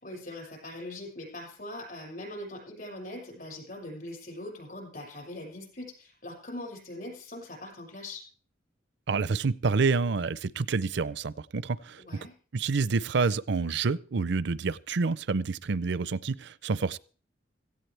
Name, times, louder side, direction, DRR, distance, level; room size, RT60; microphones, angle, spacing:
voice 1, 0.0-8.2 12.0-12.3, left 1 dB, 50° left, 6.3 m, -41 dB
voice 2, 9.1-12.0 12.5-17.0, right 4 dB, 65° right, 0.5 m, -28 dB
17.0 x 15.0 x 3.4 m
head